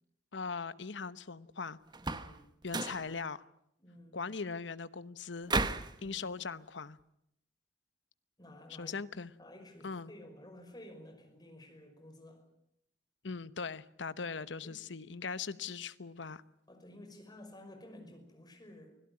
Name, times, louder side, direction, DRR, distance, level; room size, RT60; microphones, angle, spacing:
voice 1, 0.3-1.8 2.6-3.4 4.1-5.5 6.0-7.0 8.8-9.3 9.8-10.1 13.2-16.4, left 5 dB, 80° left, 15 dB, 1.0 m, -40 dB
sound 1, 1.9-2.4 2.7-3.1 5.5-5.9, right 3 dB, 25° right, 1.1 m, -33 dB
voice 2, 2.1-2.5 3.8-4.2 6.0-6.3 8.4-9.0 9.4-12.4 14.6-14.8 16.7-19.0, left 1 dB, 25° left, 4 dB, 5.6 m, -53 dB
25.0 x 17.0 x 9.7 m, 0.76 s
head